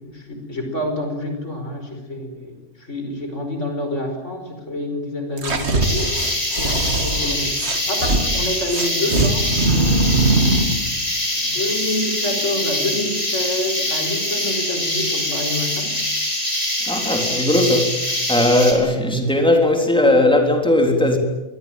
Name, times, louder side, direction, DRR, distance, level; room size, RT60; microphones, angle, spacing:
voice 1, 0.0-6.2 6.6-7.6 7.9-10.3 11.4-15.9, left 1 dB, 75° left, 5 dB, 5.4 m, -27 dB
sound 1, 5.4-8.2 8.7-10.8, right 2 dB, 60° right, 2.4 m, -20 dB
sound 2, 5.8-18.7, left 1 dB, 30° left, 5.3 m, -24 dB
voice 2, 16.8-17.9 18.3-21.2, left 1 dB, 5° left, 3 dB, 3.7 m, -17 dB
25.5 x 19.5 x 9.1 m, 1.0 s
omnidirectional pair, 1.3 m